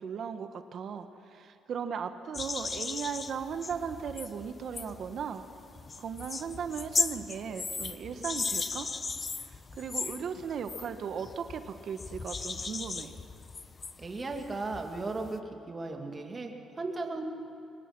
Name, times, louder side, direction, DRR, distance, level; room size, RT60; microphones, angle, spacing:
voice 1, 0.0-5.4 6.0-8.9 9.5-13.1, right 7 dB, 60° right, 8 dB, 1.3 m, -37 dB
sound 1, 2.3-15.4, left 4 dB, 35° left, 0.9 m, -37 dB
voice 2, 14.0-15.4 15.7-17.3, right 3 dB, 30° right, 3 dB, 2.6 m, -36 dB
23.5 x 20.5 x 6.1 m, 2.9 s
cardioid pair, 90°, 0 cm